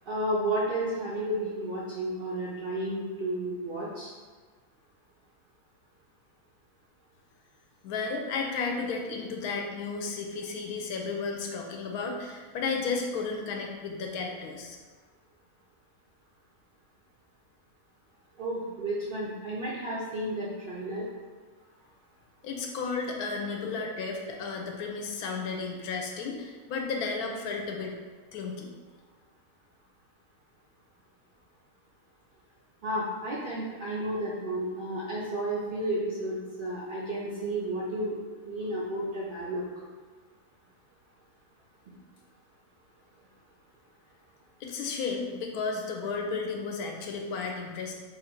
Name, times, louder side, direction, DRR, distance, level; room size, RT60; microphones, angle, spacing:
voice 1, 0.1-4.1 18.4-21.1 32.8-38.2 38.4-39.6, right 1 dB, 90° right, -6 dB, 0.4 m, -32 dB
voice 2, 7.8-14.8 22.4-28.0 28.3-28.7 44.6-47.9, left 4 dB, 80° left, 1 dB, 1.1 m, -33 dB
2.9 x 2.5 x 4.3 m, 1.4 s
omnidirectional pair, 1.6 m